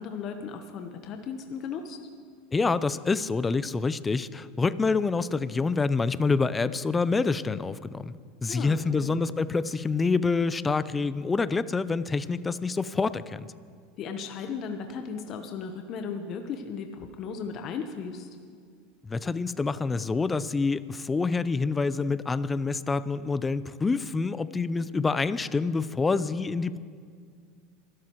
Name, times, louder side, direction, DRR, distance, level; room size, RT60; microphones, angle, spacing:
voice 1, 0.0-2.0 8.5-9.1 14.0-18.3, left 6 dB, 45° left, 5 dB, 1.1 m, -36 dB
voice 2, 2.5-8.1 8.4-13.5 19.0-26.8, left 4 dB, 20° left, 16 dB, 0.5 m, -27 dB
24.5 x 12.5 x 3.1 m, 2.1 s
hypercardioid pair, 90°, 0 cm